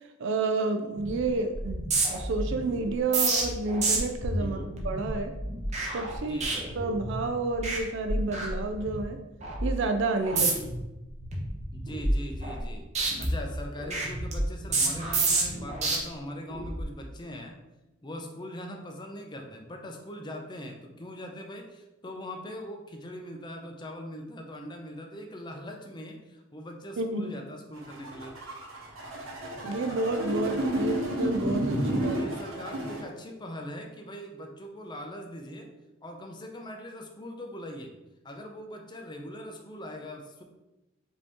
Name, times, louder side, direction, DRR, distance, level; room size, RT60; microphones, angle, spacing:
voice 1, 0.2-4.6 4.8-5.3 5.9-6.4 6.8-9.2 9.6-10.5 27.0-27.3 29.6-32.2, right 3 dB, 65° right, 6 dB, 0.4 m, -30 dB
sound 1, 1.0-1.2 1.5-7.2 7.5-7.8 8.1-9.0 9.4-9.7 10.2-10.8 11.2-12.7 13.0-16.0 16.5-16.8, right 2 dB, 35° right, 0.9 m, -29 dB
voice 2, 4.4-4.7 6.2-6.7 10.3-10.6 11.7-12.9 13.2-17.6 18.0-28.4 32.1-35.7 36.0-37.9 38.2-40.4, equal, 20° left, 3 dB, 0.5 m, -41 dB
sound 2, 27.7-33.0, right 1 dB, 90° right, 1.1 m, -31 dB
5.2 x 2.8 x 3.5 m, 1.0 s
head